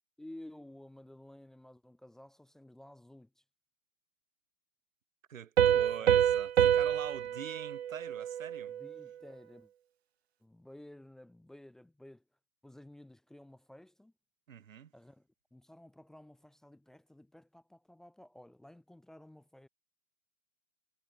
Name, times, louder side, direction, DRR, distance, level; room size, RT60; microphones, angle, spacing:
voice 1, 0.2-3.4 5.6-6.2 7.2-7.5 8.7-9.7 10.4-12.2 12.6-14.1 14.9-19.7, left 1 dB, ahead, 1.4 m, -54 dB
voice 2, 5.3-8.7 14.5-14.9, right 8 dB, 65° right, 1.8 m, -45 dB
Piano, 5.6-9.0, right 10 dB, 50° right, 0.6 m, -27 dB
hypercardioid pair, 170°, 42 cm